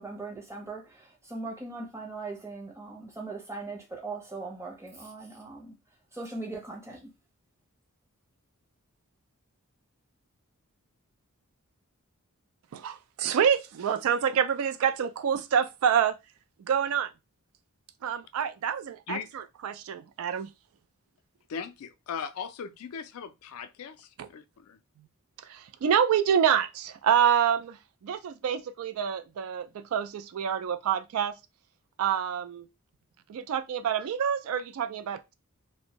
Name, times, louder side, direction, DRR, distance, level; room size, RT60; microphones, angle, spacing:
voice 1, 0.0-5.7 6.1-7.0, right 3 dB, 10° right, 0.6 m, -39 dB
voice 2, 12.7-16.2 16.6-17.1 18.0-20.5 24.2-24.3 25.4-27.8 28.0-31.4 32.0-32.7 33.3-35.3, right 8 dB, 65° right, 0.3 m, -27 dB
voice 3, 21.5-24.8, left 6 dB, 70° left, 0.3 m, -38 dB
2.6 x 2.1 x 2.8 m
head